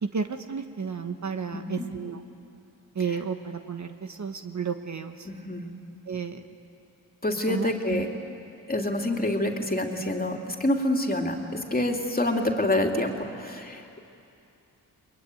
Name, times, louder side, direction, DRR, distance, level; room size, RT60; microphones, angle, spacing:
voice 1, 0.0-2.2 2.9-5.3 6.1-6.4 7.5-8.1, right 5 dB, 50° right, 7 dB, 1.3 m, -32 dB
voice 2, 1.5-1.8 5.2-5.7 7.2-8.1 8.7-14.0, left 1 dB, 25° left, 2 dB, 2.9 m, -27 dB
22.0 x 22.0 x 9.4 m, 2.6 s
cardioid pair, 55°, 38 cm